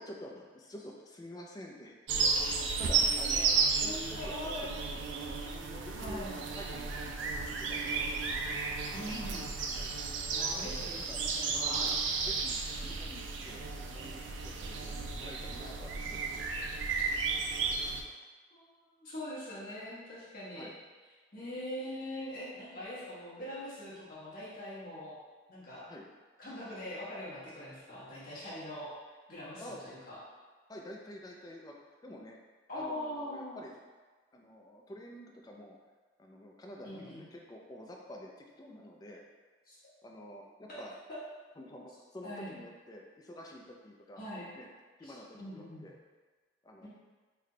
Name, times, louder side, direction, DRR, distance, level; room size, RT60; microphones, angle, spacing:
voice 1, 0.0-2.0 2.8-4.6 5.4-6.3 6.5-7.3 7.6-8.1 9.7-9.9 11.0-11.2 11.8-12.0 12.2-16.7 20.5-20.7 25.9-26.1 29.6-29.8 30.7-31.7 32.0-32.4 32.7-33.7 34.3-35.8 36.2-39.2 40.0-40.9 41.6-44.2 44.5-44.7 45.0-45.9 46.6-46.9, equal, 20° left, 0 dB, 0.3 m, -49 dB
sound 1, 2.1-18.0, right 4 dB, 75° right, 0.4 m, -33 dB
voice 2, 3.8-4.7 5.9-6.4 8.9-9.5 10.3-11.8 18.5-20.7 21.3-25.1 25.5-25.8 26.4-28.9 29.3-30.2 32.7-33.6 36.8-37.3 39.7-39.8 40.7-40.8 41.1-41.2 42.2-42.5 44.2-44.5 45.0-45.9 46.8-46.9, left 1 dB, 50° left, -9 dB, 1.2 m, -42 dB
3.3 x 2.2 x 3.7 m, 1.4 s
head